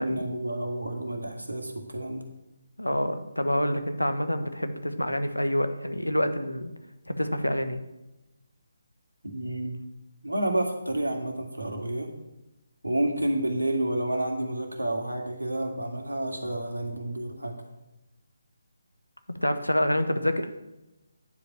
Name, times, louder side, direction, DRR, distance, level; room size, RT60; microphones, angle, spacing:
voice 1, 0.0-2.2 9.2-9.8 10.2-12.1 12.8-17.6, right 1 dB, 80° right, 4 dB, 1.9 m, -30 dB
voice 2, 2.8-6.7 7.1-7.8 19.4-20.5, left 1 dB, 85° left, 9 dB, 1.1 m, -27 dB
9.8 x 5.2 x 7.3 m, 0.96 s
figure-of-eight pair, 145°, 0 cm